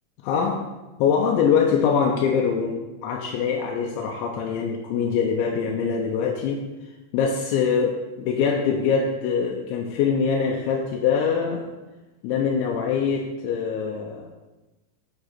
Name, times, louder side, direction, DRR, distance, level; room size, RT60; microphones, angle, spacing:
voice 1, 0.2-0.6 1.0-6.6 7.1-11.7 12.2-14.3, left 6 dB, 80° left, 0 dB, 2.8 m, -23 dB
10.5 x 5.2 x 4.0 m, 1.1 s
omnidirectional pair, 5.9 m